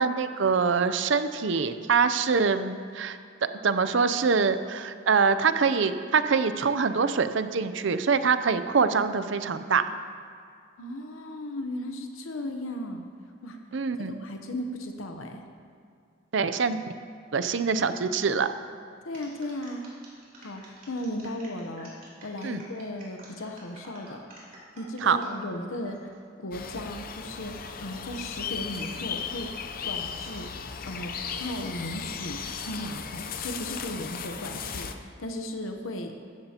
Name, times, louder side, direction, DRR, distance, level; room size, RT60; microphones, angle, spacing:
voice 1, 0.0-3.2 3.6-9.9 13.7-14.2 16.3-16.9 17.3-18.5 22.4-22.6 25.0-25.2, right 5 dB, 65° right, 11 dB, 0.5 m, -24 dB
voice 2, 10.8-13.0 13.4-13.6 14.0-15.4 19.0-19.8 20.4-21.9 22.2-24.3 24.8-29.5 29.8-31.1 31.4-36.3, left 1 dB, 85° left, 4 dB, 0.9 m, -36 dB
sound 1, 19.1-25.3 25.8-26.2, right 1 dB, 45° right, 3.5 m, -50 dB
sound 2, 26.5-34.9, left 6 dB, 45° left, 0.6 m, -36 dB
14.5 x 13.5 x 2.9 m, 2.3 s
head